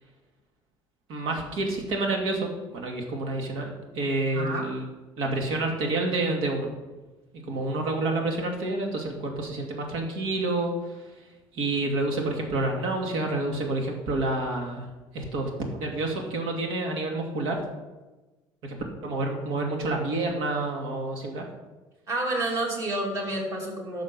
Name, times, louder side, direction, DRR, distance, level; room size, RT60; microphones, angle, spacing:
voice 1, 1.1-4.9 5.2-6.7 7.5-10.7 11.5-14.8 15.1-17.6 18.6-18.8 19.0-21.4, right 2 dB, 80° right, 2 dB, 2.4 m, -28 dB
voice 2, 4.3-4.7 22.1-24.0, right 2 dB, 40° right, -1 dB, 2.7 m, -29 dB
11.0 x 6.6 x 5.5 m, 1.1 s
cardioid pair, 150°, 9 cm